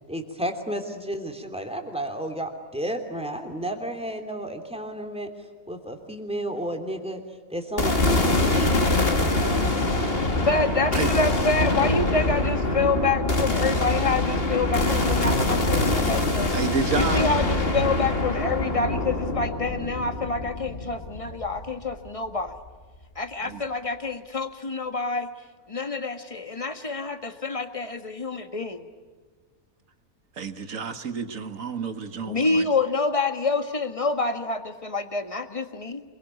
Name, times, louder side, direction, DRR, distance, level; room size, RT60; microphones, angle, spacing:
voice 1, 0.1-5.3 5.7-7.2 7.5-8.7 9.1-9.7, right 1 dB, 5° right, 4 dB, 3.0 m, -32 dB
sound 1, 7.8-22.1, left 2 dB, 40° left, 2.6 m, -24 dB
voice 2, 10.4-16.5 16.9-22.6 23.1-25.3 25.7-28.8 32.2-36.0, left 3 dB, 20° left, 8 dB, 1.7 m, -27 dB
voice 3, 16.5-17.3 23.4-23.6 30.4-32.6, right 5 dB, 60° right, 9 dB, 2.0 m, -30 dB
27.0 x 23.0 x 9.4 m, 1.4 s
omnidirectional pair, 1.6 m